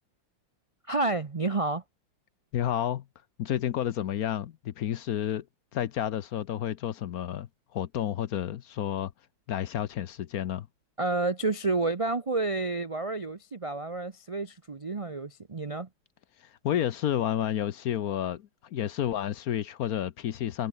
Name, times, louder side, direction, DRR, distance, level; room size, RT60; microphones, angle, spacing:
voice 1, 0.9-1.8 11.0-15.9, right 3 dB, 65° right, 0.3 m, -30 dB
voice 2, 2.5-3.1 3.4-5.5 5.7-9.1 9.5-10.7 16.4-20.7, left 11 dB, 60° left, 1.1 m, -30 dB
omnidirectional pair, 2.0 m